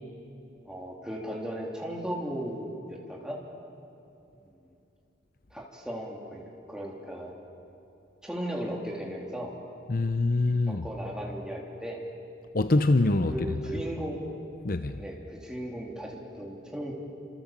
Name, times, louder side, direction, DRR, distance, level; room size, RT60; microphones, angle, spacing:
voice 1, 0.6-3.4 4.4-4.7 5.5-7.3 8.2-9.5 10.3-12.0 13.3-14.2 15.0-16.9, equal, 5° right, 3.4 m, -36 dB
voice 2, 9.9-10.8 12.5-13.3 14.6-15.0, left 2 dB, 45° left, 0.8 m, -24 dB
29.0 x 27.0 x 7.5 m
head